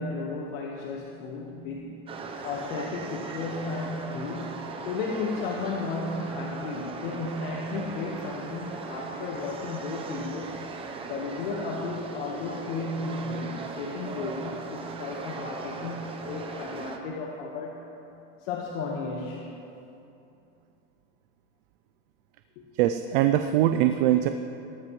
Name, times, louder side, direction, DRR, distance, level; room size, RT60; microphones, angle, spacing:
voice 1, 0.0-2.0 2.4-10.6 11.1-17.9 18.4-19.5, left 3 dB, 60° left, -1 dB, 1.5 m, -34 dB
sound 1, 2.1-17.0, right 4 dB, 15° right, 0.8 m, -38 dB
voice 2, 22.8-24.3, right 12 dB, 55° right, 8 dB, 0.6 m, -22 dB
18.5 x 13.5 x 3.2 m, 2.8 s
supercardioid pair, 155°, 34 cm